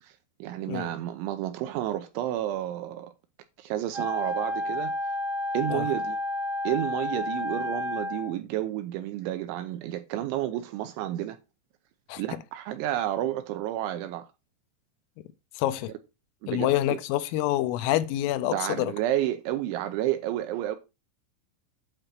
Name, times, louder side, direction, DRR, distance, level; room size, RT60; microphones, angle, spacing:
voice 1, 0.0-3.1 3.6-5.1 5.5-6.2 6.6-11.4 12.2-14.3 16.4-17.0 18.4-20.8, right 13 dB, 80° right, 2.9 m, -31 dB
Wind instrument woodwind instrument, 3.9-8.3, left 1 dB, 10° left, 2.8 m, -31 dB
voice 2, 15.6-15.9 16.5-18.9, left 14 dB, 85° left, 3.4 m, -27 dB
9.0 x 4.4 x 6.6 m
omnidirectional pair, 5.9 m